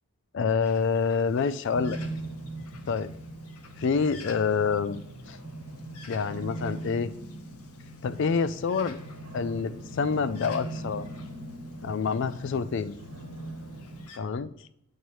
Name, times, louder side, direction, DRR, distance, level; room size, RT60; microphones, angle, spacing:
voice 1, 0.3-2.0 2.9-3.1 3.8-5.0 5.3-5.4 6.1-7.1 8.0-9.0 9.3-11.1 11.8-13.0 14.2-14.5, left 5 dB, 55° left, 15 dB, 0.3 m, -27 dB
Bird, 0.6-14.2, left 5 dB, 85° left, 0.8 m, -53 dB
sound 1, 1.7-14.1, right 1 dB, 85° right, 1.4 m, -40 dB
8.2 x 4.5 x 3.1 m, 0.78 s
head